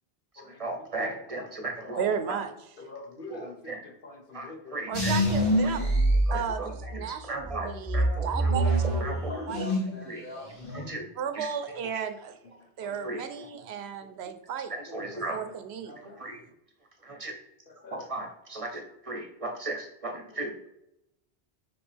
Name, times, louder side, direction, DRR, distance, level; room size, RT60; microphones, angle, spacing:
voice 1, 0.3-2.1 3.3-3.9 4.3-5.1 5.6-5.7 6.3-8.6 9.0-9.4 10.0-10.3 10.7-11.1 11.3-11.8 13.0-13.5 14.7-15.4 16.0-16.4 17.1-17.3 17.9-20.7, right 2 dB, 35° right, 3 dB, 0.9 m, -37 dB
voice 2, 2.0-2.5 4.9-5.9 6.3-6.6 6.9-9.1 9.5-9.7 11.2-12.4 12.8-14.7 15.1-16.0, right 7 dB, 85° right, 8 dB, 0.9 m, -34 dB
voice 3, 2.9-3.5 4.0-4.8 8.0-8.2 9.3-10.9 12.8-12.9 14.9-15.0 15.9-16.2 17.8-18.0, left 2 dB, 55° left, 3 dB, 1.2 m, -43 dB
sound 1, 4.9-7.0 7.4-10.0 10.3-10.9, right 1 dB, 30° left, 2.4 m, -26 dB
5.3 x 5.2 x 3.4 m, 0.84 s
omnidirectional pair, 1.1 m